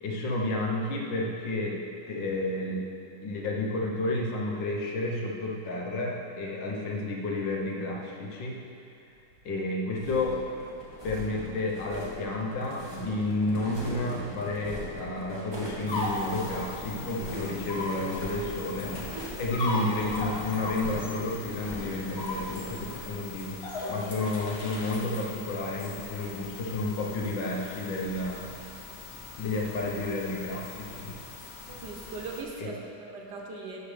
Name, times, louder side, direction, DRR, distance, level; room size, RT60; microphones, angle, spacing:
voice 1, 0.0-2.9 3.2-8.6 9.5-10.4 11.0-19.0 19.4-28.5 29.4-31.2, left 2 dB, 70° left, -1 dB, 1.8 m, -31 dB
sound 1, 9.9-23.1, equal, 15° right, 1.7 m, -40 dB
sound 2, 15.9-32.4, left 2 dB, 40° left, 1.1 m, -39 dB
voice 2, 31.7-33.8, right 3 dB, 65° right, -1 dB, 1.6 m, -39 dB
12.0 x 8.2 x 3.4 m, 2.6 s
omnidirectional pair, 2.1 m